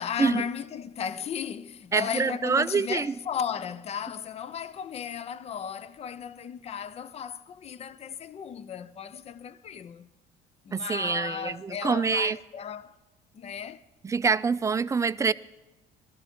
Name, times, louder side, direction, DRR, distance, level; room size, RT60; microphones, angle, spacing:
voice 1, 0.0-10.1 10.6-12.9 13.3-13.8, left 8 dB, 40° left, 0.6 m, -35 dB
voice 2, 1.9-3.1 10.7-12.4 14.0-15.3, right 5 dB, 20° right, 0.4 m, -26 dB
19.0 x 13.0 x 3.6 m
cardioid pair, 110°, 17 cm